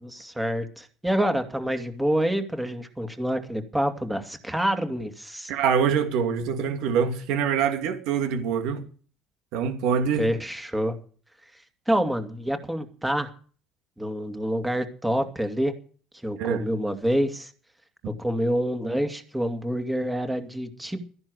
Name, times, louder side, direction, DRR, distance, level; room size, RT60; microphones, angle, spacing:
voice 1, 0.1-5.5 10.2-11.0 11.9-13.3 14.0-15.8 16.2-17.5 18.0-21.0, equal, 5° right, 2.3 m, -27 dB
voice 2, 5.5-8.8 9.5-10.3 16.4-16.6, right 7 dB, 75° right, 2.6 m, -24 dB
14.0 x 10.5 x 6.3 m
cardioid pair, 110°, 0 cm